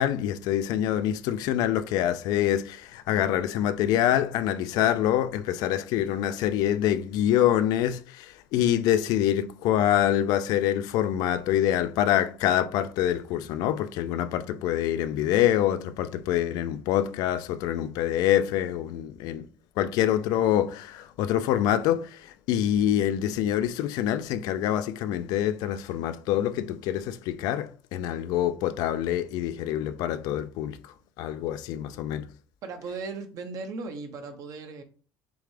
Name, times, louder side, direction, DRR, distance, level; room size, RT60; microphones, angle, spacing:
voice 1, 0.0-19.5 19.8-32.3, left 11 dB, 75° left, 0.4 m, -26 dB
voice 2, 32.6-34.8, right 4 dB, 55° right, 1.1 m, -37 dB
6.8 x 2.3 x 3.3 m
cardioid pair, 115°, 7 cm